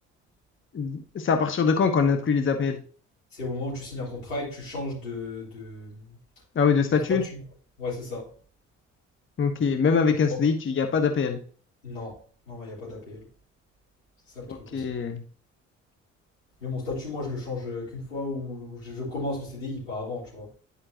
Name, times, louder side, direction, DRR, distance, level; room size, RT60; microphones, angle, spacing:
voice 1, 0.7-2.8 6.5-7.2 9.4-11.4 14.5-15.2, left 5 dB, 30° left, 1.1 m, -23 dB
voice 2, 3.3-6.2 7.1-7.4 7.8-8.3 10.3-10.4 11.8-12.2 12.5-13.3 14.3-14.9 16.6-20.5, left 2 dB, 85° left, 3.9 m, -34 dB
11.0 x 5.6 x 2.9 m
figure-of-eight pair, 45°, 37 cm